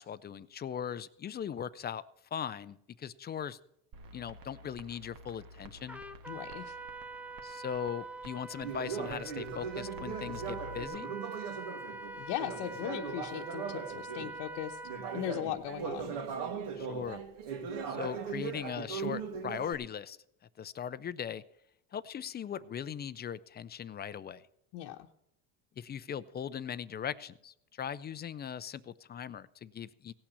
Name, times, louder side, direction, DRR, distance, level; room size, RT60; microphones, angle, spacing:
voice 1, 0.0-2.0 2.3-3.6 4.1-6.0 7.4-11.1 16.8-17.2 17.9-20.2 20.6-21.4 21.9-24.5 25.8-30.1, left 8 dB, 25° left, 16 dB, 0.4 m, -39 dB
sound 1, 3.9-10.8, right 1 dB, 50° right, 1.5 m, -51 dB
Trumpet, 5.9-15.4, right 3 dB, 5° right, 0.7 m, -44 dB
voice 2, 6.3-6.8 12.2-14.8 15.1-16.1 24.7-25.1, left 12 dB, 70° left, 1 dB, 1.0 m, -38 dB
Conversation, 8.6-14.4 14.8-19.7, right 6 dB, 65° right, 2.3 m, -39 dB
17.0 x 6.0 x 8.2 m, 0.76 s
cardioid pair, 125°, 43 cm